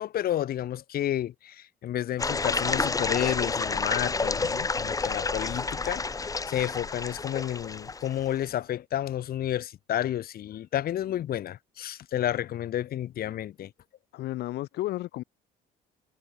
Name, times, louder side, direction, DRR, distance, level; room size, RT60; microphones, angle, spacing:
voice 1, 0.0-13.7, left 12 dB, 60° left, 7.7 m, -31 dB
sound 1, 2.2-8.3, left 4 dB, 20° left, 2.0 m, -29 dB
voice 2, 14.1-15.2, left 16 dB, 75° left, 7.5 m, -33 dB
cardioid pair, 110°, 17 cm